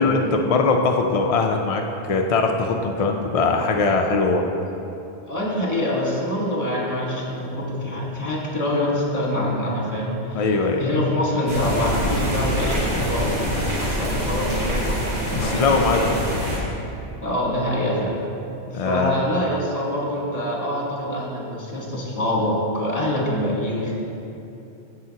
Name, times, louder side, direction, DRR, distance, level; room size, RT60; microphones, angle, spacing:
voice 1, 0.0-4.5 10.3-10.8 15.3-16.2 18.7-19.2, left 3 dB, 65° left, 2 dB, 0.3 m, -21 dB
voice 2, 5.2-13.4 13.8-15.7 17.2-18.2 18.7-23.9, left 1 dB, 30° left, -4 dB, 1.5 m, -25 dB
sound 1, 11.5-16.6, equal, 55° right, 2.1 m, -25 dB
13.5 x 5.0 x 2.8 m, 2.8 s
omnidirectional pair, 1.2 m